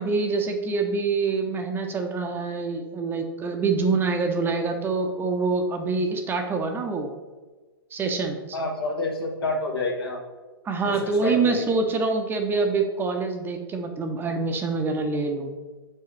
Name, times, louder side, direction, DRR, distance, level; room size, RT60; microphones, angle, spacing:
voice 1, 0.0-7.1 7.9-8.4 10.6-15.5, right 4 dB, 15° right, 4 dB, 0.6 m, -25 dB
voice 2, 8.5-10.2 10.8-11.6, left 2 dB, 80° left, -1 dB, 1.3 m, -28 dB
6.3 x 4.7 x 3.2 m, 1.3 s
hypercardioid pair, 115°, 12 cm